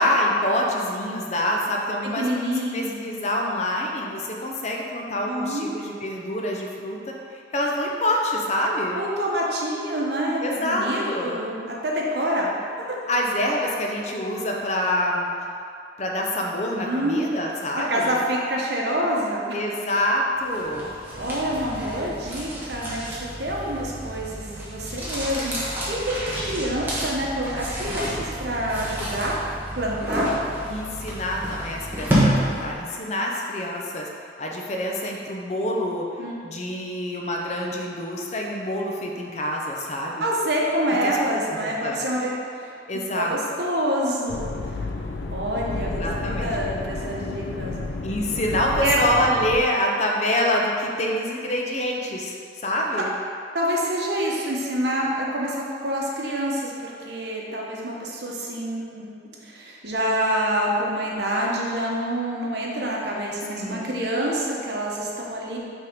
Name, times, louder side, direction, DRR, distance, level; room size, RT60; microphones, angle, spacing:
voice 1, 0.0-2.2 2.7-7.0 7.3-9.0 10.4-11.4 13.1-15.3 16.0-18.2 19.5-20.9 30.7-34.1 34.4-36.0 36.4-40.3 41.0-41.1 41.5-42.0 42.9-43.3 45.8-46.5 48.0-53.1 63.5-63.9, left 1 dB, 40° left, 0 dB, 0.7 m, -26 dB
voice 2, 2.2-3.0 5.3-5.8 8.9-13.0 16.8-17.3 17.7-19.6 21.2-29.4 29.7-30.3 36.2-36.6 40.2-42.7 43.1-44.9 45.3-47.7 48.8-49.0 53.5-65.6, right 1 dB, 70° right, -3 dB, 1.0 m, -27 dB
sound 1, 20.5-32.9, equal, 10° right, 1.1 m, -29 dB
sound 2, 44.3-49.6, left 3 dB, 80° left, 0.4 m, -31 dB
5.5 x 3.7 x 5.2 m, 2.3 s
head